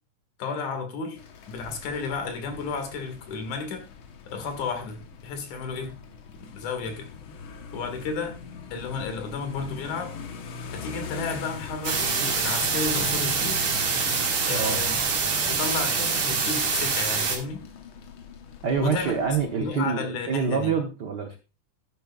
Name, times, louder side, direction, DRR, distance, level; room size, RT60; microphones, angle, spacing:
voice 1, 0.4-1.2 1.5-3.9 4.3-6.0 6.4-7.1 7.7-8.3 8.7-10.1 10.7-13.6 14.5-14.9 15.5-17.6 18.8-19.2 19.6-20.7, left 5 dB, 80° left, 6 dB, 3.3 m, -32 dB
sound 1, 1.2-19.7, left 5 dB, 55° left, 1.6 m, -41 dB
sound 2, 11.8-17.4, right 5 dB, 65° right, 3.2 m, -25 dB
voice 2, 18.6-21.4, right 6 dB, 85° right, 5 dB, 0.9 m, -26 dB
11.5 x 10.5 x 2.4 m, 0.30 s
omnidirectional pair, 3.4 m